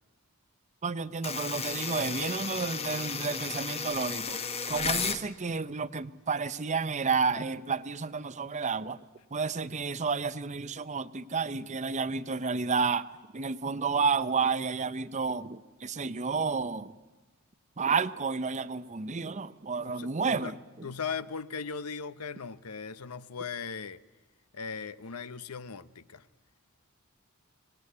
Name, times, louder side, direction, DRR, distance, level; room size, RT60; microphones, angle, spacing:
voice 1, 0.8-4.4 4.7-9.0 9.3-13.1 13.3-17.0 17.8-20.6, right 5 dB, 30° right, 14 dB, 0.7 m, -31 dB
sound 1, 1.2-5.2, left 5 dB, 25° left, 1.1 m, -33 dB
voice 2, 19.8-20.5 20.8-24.0 24.5-26.3, left 5 dB, 85° left, 15 dB, 0.8 m, -38 dB
25.0 x 19.0 x 8.4 m, 1.3 s
head